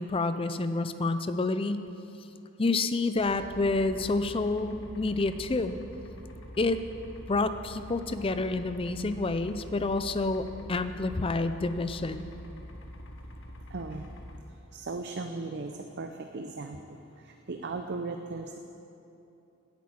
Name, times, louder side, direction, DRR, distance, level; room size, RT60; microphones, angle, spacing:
voice 1, 0.0-1.8 2.6-5.7 6.6-6.8 7.3-12.3, left 3 dB, 25° left, 10 dB, 0.5 m, -28 dB
sound 1, 3.2-14.4, left 1 dB, 65° left, 1.1 m, -45 dB
voice 2, 13.7-14.1 14.7-17.0 17.2-18.6, right 3 dB, 50° right, 5 dB, 0.6 m, -37 dB
10.5 x 8.4 x 8.6 m, 2.9 s
head